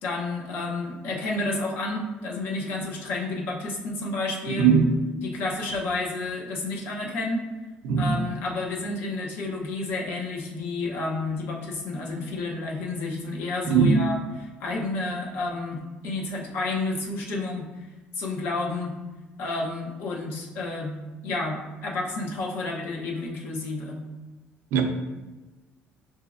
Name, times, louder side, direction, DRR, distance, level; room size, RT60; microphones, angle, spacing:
voice 1, 0.0-4.7 5.2-7.4 8.0-17.9 18.1-19.0 19.4-24.0, left 2 dB, 65° left, -1 dB, 0.8 m, -30 dB
voice 2, 4.6-4.9 7.8-8.2 13.7-14.0 24.7-24.8, right 6 dB, 75° right, 4 dB, 0.5 m, -19 dB
5.8 x 2.7 x 2.5 m, 1.2 s
cardioid pair, 130°, 4 cm